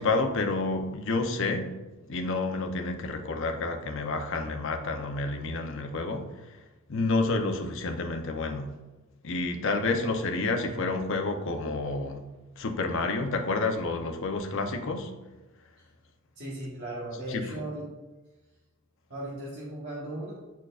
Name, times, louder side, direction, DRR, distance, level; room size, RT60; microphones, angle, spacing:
voice 1, 0.0-1.7 2.1-6.3 6.9-8.7 9.2-12.3 12.6-15.1 17.3-17.4, left 3 dB, 60° left, 4 dB, 0.7 m, -29 dB
voice 2, 16.4-17.8 19.1-20.3, right 1 dB, 55° right, -7 dB, 1.4 m, -36 dB
9.2 x 4.4 x 2.4 m, 1.1 s
head